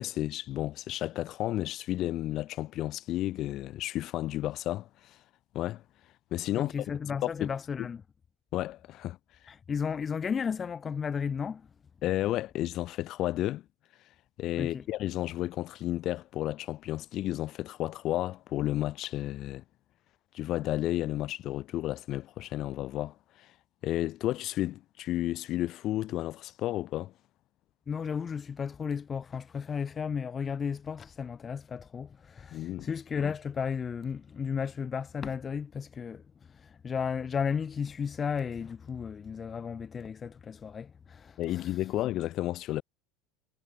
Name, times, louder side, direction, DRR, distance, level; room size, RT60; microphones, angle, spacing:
voice 1, 0.0-5.2 5.5-5.8 6.3-6.9 7.2-7.5 7.8-7.9 8.5-9.2 12.0-13.6 14.4-19.6 20.3-23.5 23.8-27.1 32.5-32.9 41.4-42.8, left 14 dB, 50° left, 3.4 m, -32 dB
voice 2, 6.5-8.0 9.5-11.6 14.6-14.8 27.9-36.2 36.8-41.6, left 6 dB, 25° left, 3.2 m, -34 dB
supercardioid pair, 105°, 0 cm